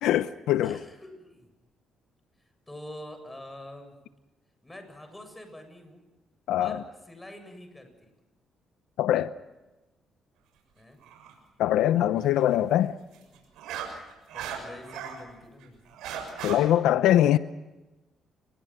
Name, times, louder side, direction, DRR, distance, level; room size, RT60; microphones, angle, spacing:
voice 1, 0.0-0.8 6.5-6.8 9.0-9.3 11.6-13.0 16.4-17.4, left 12 dB, 85° left, 0.7 m, -22 dB
voice 2, 0.6-1.5 2.7-3.9 4.6-6.0 6.6-8.1 10.8-11.0 14.3-15.8, left 1 dB, 10° left, 7.5 m, -45 dB
sound 1, 11.0-11.3 13.1-15.2 15.6-16.6, right 9 dB, 90° right, 6.7 m, -37 dB
30.0 x 22.0 x 6.0 m
cardioid pair, 85°, 0 cm